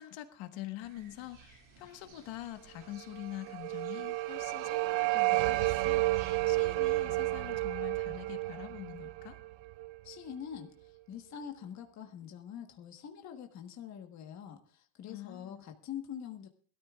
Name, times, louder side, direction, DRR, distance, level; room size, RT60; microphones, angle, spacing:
voice 1, 0.0-9.4 15.1-15.6, left 14 dB, 80° left, 7 dB, 1.6 m, -45 dB
sound 1, 0.8-7.0, right 4 dB, 45° right, 4.9 m, -58 dB
sound 2, 3.1-10.2, right 20 dB, 70° right, 0.6 m, -31 dB
voice 2, 10.0-16.5, left 8 dB, 40° left, 4 dB, 1.4 m, -45 dB
21.5 x 13.5 x 2.4 m, 0.43 s
cardioid pair, 170°, 44 cm